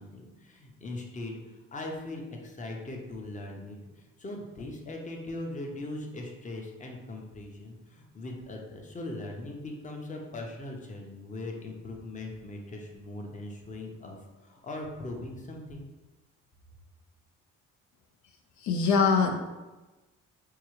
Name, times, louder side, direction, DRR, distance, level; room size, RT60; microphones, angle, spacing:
voice 1, 0.0-15.9, left 2 dB, 25° left, 1 dB, 0.7 m, -40 dB
voice 2, 18.6-19.4, left 5 dB, 70° left, 3 dB, 0.5 m, -23 dB
4.6 x 2.3 x 3.1 m, 1.1 s
cardioid pair, 90°, 30 cm